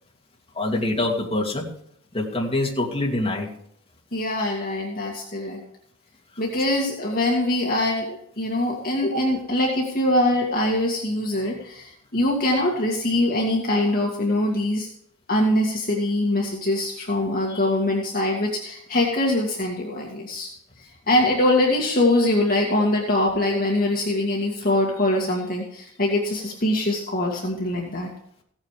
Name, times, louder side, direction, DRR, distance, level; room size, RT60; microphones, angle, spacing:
voice 1, 0.5-1.7 2.1-3.5, left 2 dB, 25° left, -2 dB, 2.6 m, -25 dB
voice 2, 4.1-5.6 6.4-14.9 15.3-20.5 20.8-28.1, left 1 dB, 40° left, -1 dB, 2.1 m, -23 dB
16.0 x 9.0 x 5.0 m, 0.67 s
head